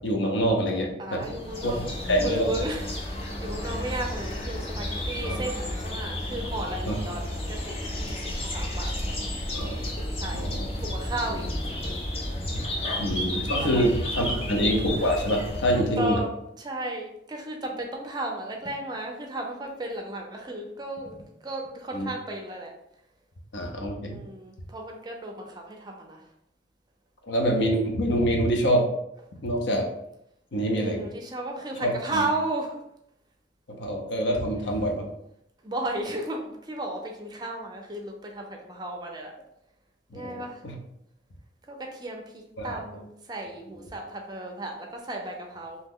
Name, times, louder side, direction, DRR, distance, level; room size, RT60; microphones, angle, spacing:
voice 1, 0.0-1.3 1.6-1.7 2.1-2.5 5.2-5.4 6.9-7.0 9.5-9.8 10.3-10.7 11.3-11.4 13.0-16.2 21.9-22.1 23.5-24.2 27.3-28.9 29.4-29.8 30.5-31.1 31.8-32.2 33.7-35.1 40.1-40.8 42.6-42.7 43.7-43.8, equal, 80° left, 2 dB, 0.6 m, -26 dB
voice 2, 1.0-1.8 2.2-8.2 8.5-8.9 10.1-11.5 13.1-13.8 14.3-14.6 15.7-22.7 24.0-26.2 30.8-32.8 35.6-39.3 40.1-40.6 41.7-45.8, right 1 dB, 25° right, 1 dB, 0.4 m, -34 dB
sound 1, 1.2-16.1, left 1 dB, 30° left, 0.5 m, -32 dB
2.8 x 2.1 x 3.6 m, 0.77 s
head